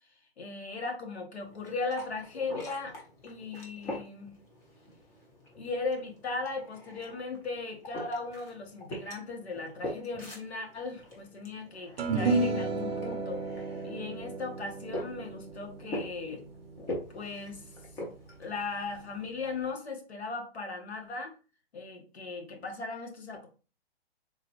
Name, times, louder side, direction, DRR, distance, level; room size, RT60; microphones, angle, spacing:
voice 1, 0.4-3.0 3.2-4.4 5.6-13.4 13.8-16.4 17.1-17.6 18.4-21.3 21.7-23.5, left 3 dB, 90° left, 3 dB, 1.2 m, -37 dB
sound 1, 1.4-19.3, left 1 dB, 10° left, 0.5 m, -44 dB
sound 2, 12.0-18.5, right 3 dB, 65° right, 0.7 m, -33 dB
3.7 x 2.4 x 2.9 m, 0.34 s
hypercardioid pair, 140°, 32 cm